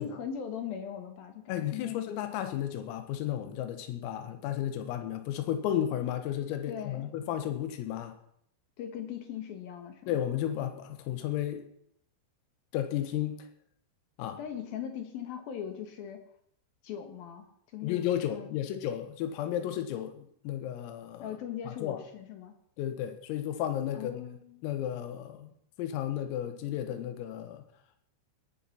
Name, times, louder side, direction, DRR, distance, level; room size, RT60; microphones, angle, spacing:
voice 1, 0.0-2.0 6.7-7.1 8.8-10.2 14.4-16.2 16.8-18.5 21.2-22.5 23.9-24.7, left 8 dB, 65° left, 7 dB, 2.5 m, -40 dB
voice 2, 1.5-8.1 10.1-11.7 12.7-13.5 14.2-14.4 17.8-21.3 21.7-22.0 22.8-24.3 24.6-25.5 25.8-27.7, left 11 dB, 80° left, 8 dB, 4.1 m, -33 dB
19.5 x 10.5 x 5.9 m, 0.71 s
omnidirectional pair, 6.0 m